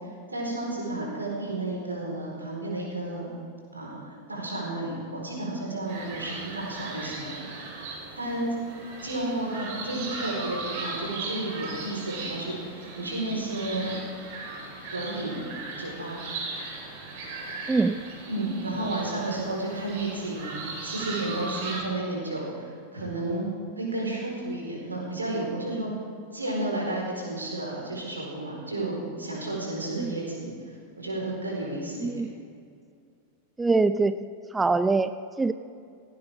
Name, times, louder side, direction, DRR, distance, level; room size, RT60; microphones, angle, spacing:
voice 1, 0.3-3.3 3.7-7.7 8.2-8.5 9.0-14.0 14.9-15.4 15.8-16.2 18.3-23.5 23.8-25.9 26.3-30.5 31.0-32.2, right 2 dB, 80° right, -3 dB, 4.6 m, -32 dB
sound 1, 5.9-21.8, right 3 dB, 50° right, 3.9 m, -38 dB
voice 2, 17.7-18.0 30.0-30.1 32.0-32.3 33.6-34.3 34.5-35.1 35.4-35.5, right 3 dB, 10° right, 12 dB, 0.4 m, -23 dB
17.5 x 17.0 x 3.7 m, 2.3 s
figure-of-eight pair, 90°, 0 cm